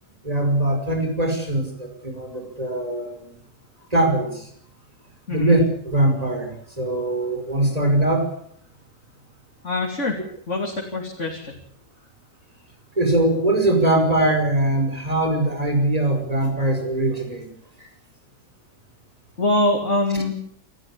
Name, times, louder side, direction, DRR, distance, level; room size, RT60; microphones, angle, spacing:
voice 1, 0.2-1.7 2.0-3.2 3.9-4.4 5.3-6.5 6.8-8.3 13.0-17.5, right 1 dB, 30° right, 4 dB, 5.2 m, -21 dB
voice 2, 9.6-10.2 10.5-11.5 19.4-20.3, left 2 dB, 60° left, 0 dB, 3.5 m, -23 dB
28.5 x 14.0 x 9.9 m, 0.66 s
omnidirectional pair, 1.4 m